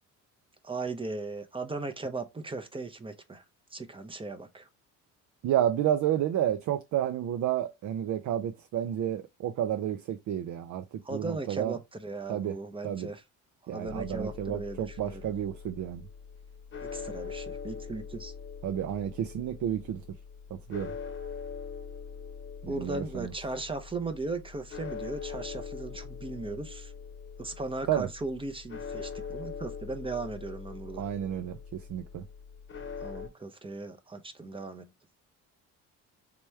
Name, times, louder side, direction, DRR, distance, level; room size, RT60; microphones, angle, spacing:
voice 1, 0.6-3.4 3.7-4.7 11.0-13.2 13.6-15.3 16.8-18.3 22.6-26.9 27.4-31.0 33.0-34.9, right 3 dB, 15° right, 0.7 m, -37 dB
voice 2, 5.4-10.8 11.1-11.8 12.3-12.5 12.8-13.1 13.7-16.0 18.6-20.0 20.5-20.9 22.6-23.3 27.9-28.1 31.0-32.2, right 11 dB, 55° right, 0.5 m, -31 dB
sound 1, 13.9-33.3, left 6 dB, 35° left, 0.9 m, -42 dB
3.4 x 3.0 x 3.2 m
cardioid pair, 90°, 34 cm